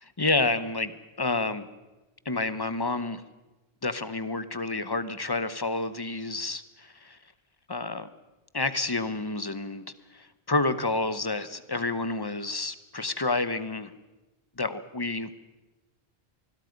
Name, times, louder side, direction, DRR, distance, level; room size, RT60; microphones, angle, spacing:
voice 1, 0.0-1.7 2.2-3.2 3.8-7.2 7.7-8.1 8.5-9.8 10.1-13.9 14.6-15.4, left 3 dB, 25° left, 13 dB, 1.0 m, -29 dB
25.0 x 21.0 x 5.3 m, 1.1 s
omnidirectional pair, 1.1 m